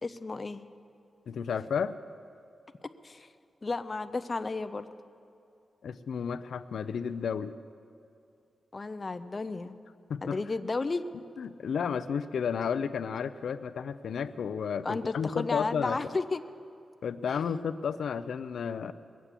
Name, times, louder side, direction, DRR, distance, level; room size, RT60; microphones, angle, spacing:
voice 1, 0.0-0.6 3.0-3.3 3.6-4.9 8.7-9.8 10.2-11.0 14.8-16.4, left 3 dB, 30° left, 10 dB, 0.4 m, -33 dB
voice 2, 1.3-2.0 5.8-7.5 10.1-10.4 11.4-16.0 17.0-18.9, left 6 dB, 85° left, 10 dB, 0.4 m, -32 dB
20.5 x 8.3 x 7.4 m, 2.5 s
wide cardioid pair, 155°, 0 cm